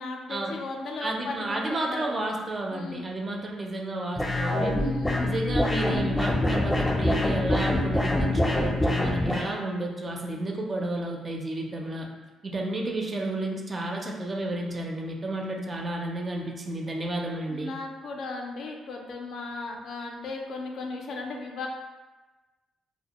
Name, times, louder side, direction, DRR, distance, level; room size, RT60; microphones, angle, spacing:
voice 1, 0.0-2.1 2.7-3.1 4.7-5.3 17.5-21.7, left 3 dB, 70° left, 2 dB, 0.3 m, -36 dB
voice 2, 1.0-4.8 5.2-12.1 12.4-17.7, right 2 dB, 35° right, 0 dB, 0.4 m, -32 dB
sound 1, 4.2-9.5, left 1 dB, 10° left, 0.6 m, -25 dB
2.1 x 2.1 x 2.8 m, 1.2 s
cardioid pair, 90°, 0 cm